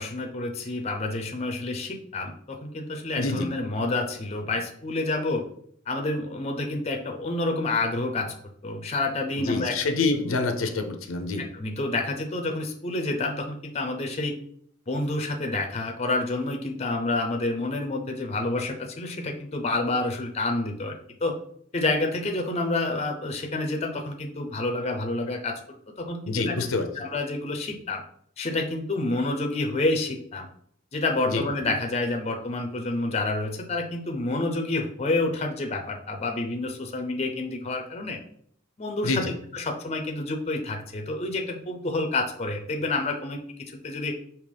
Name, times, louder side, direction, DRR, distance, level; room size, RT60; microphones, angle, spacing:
voice 1, 0.0-5.4 5.9-8.3 8.6-9.8 10.3-10.5 11.4-14.3 14.9-20.9 21.2-21.4 21.7-25.6 26.0-26.6 26.9-28.0 28.4-30.5 30.9-38.2 38.8-43.4 43.8-44.1, left 2 dB, 30° left, 3 dB, 0.5 m, -28 dB
voice 2, 3.2-3.5 9.4-11.5 26.3-26.9 31.3-31.4 39.0-39.4, left 3 dB, 85° left, 6 dB, 0.6 m, -27 dB
5.2 x 2.9 x 3.4 m, 0.66 s
head